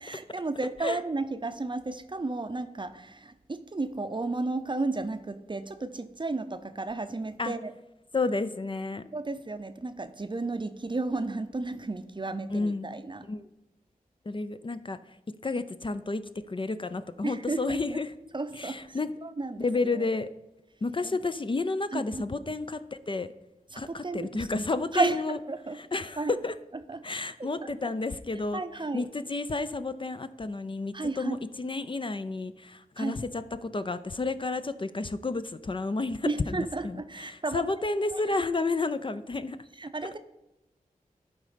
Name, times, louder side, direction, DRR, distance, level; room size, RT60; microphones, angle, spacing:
voice 1, 0.0-7.7 9.1-13.2 17.2-17.8 18.3-19.7 21.9-22.3 23.7-24.5 24.9-25.8 26.2-26.3 26.9-27.0 27.4-27.9 28.5-29.1 30.9-31.4 33.0-33.2 36.2-37.7 38.1-38.4 39.8-40.2, right 3 dB, 30° right, 10 dB, 0.6 m, -33 dB
voice 2, 8.1-9.0 12.5-12.9 13.3-13.5 14.3-15.0 15.4-16.2 16.5-18.1 18.6-19.1 19.6-20.3 20.8-23.3 23.8-25.4 25.7-26.5 27.0-28.6 28.9-39.6, left 3 dB, 35° left, 11 dB, 0.5 m, -31 dB
11.5 x 4.1 x 5.0 m, 0.97 s
cardioid pair, 45°, 15 cm